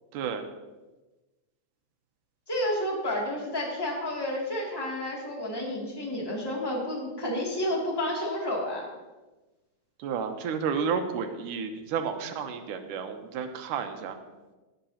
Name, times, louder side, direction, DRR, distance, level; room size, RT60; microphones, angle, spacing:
voice 1, 0.1-0.4 10.0-14.2, right 6 dB, 80° right, 6 dB, 2.4 m, -31 dB
voice 2, 2.5-8.9, left 1 dB, 10° left, -3 dB, 2.0 m, -30 dB
17.0 x 9.9 x 2.9 m, 1.2 s
omnidirectional pair, 3.7 m